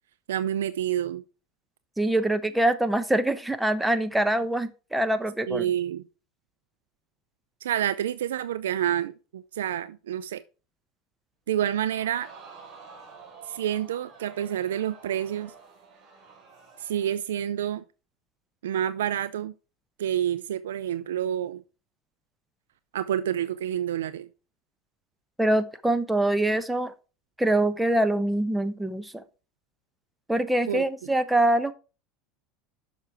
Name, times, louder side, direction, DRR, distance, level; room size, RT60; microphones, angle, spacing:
voice 1, 0.3-1.2 5.5-6.0 7.6-10.4 11.5-12.3 13.5-15.5 16.8-17.8 18.6-19.5 20.0-21.6 22.9-24.3 30.7-30.8, right 10 dB, 85° right, 0.4 m, -28 dB
voice 2, 2.0-5.7 25.4-26.9 27.4-29.2 30.3-31.7, right 1 dB, 5° right, 1.0 m, -24 dB
Crowd, 11.7-17.2 17.6-17.7, right 5 dB, 45° right, 3.4 m, -49 dB
6.7 x 6.3 x 4.8 m
hypercardioid pair, 95°, 0 cm